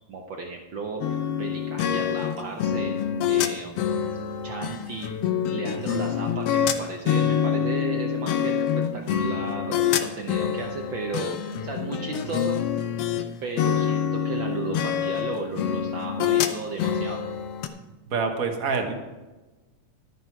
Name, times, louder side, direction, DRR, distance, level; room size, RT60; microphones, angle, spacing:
voice 1, 0.1-3.0 3.3-3.8 4.4-5.1 5.5-12.6 13.4-17.2, right 4 dB, 80° right, 2 dB, 1.0 m, -35 dB
sound 1, 1.0-13.3 13.6-17.7, left 8 dB, 70° left, 1.6 m, -26 dB
voice 2, 18.1-19.0, right 4 dB, 55° right, 4 dB, 0.9 m, -26 dB
11.5 x 10.0 x 4.6 m, 1.2 s
omnidirectional pair, 3.3 m